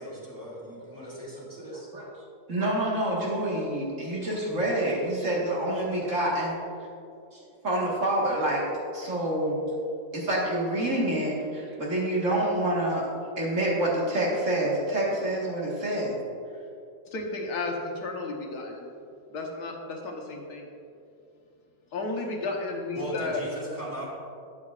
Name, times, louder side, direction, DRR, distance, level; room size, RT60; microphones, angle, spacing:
voice 1, 0.0-1.9 22.9-24.1, right 1 dB, 10° right, -7 dB, 2.2 m, -38 dB
voice 2, 1.7-2.1 2.5-6.6 7.3-8.6 8.9-9.6 10.1-16.2, right 1 dB, 50° right, -4 dB, 1.9 m, -27 dB
voice 3, 17.1-18.9 19.3-20.7 21.9-23.4, left 3 dB, 80° left, 1 dB, 1.6 m, -33 dB
12.0 x 8.6 x 2.4 m, 2.5 s
omnidirectional pair, 1.7 m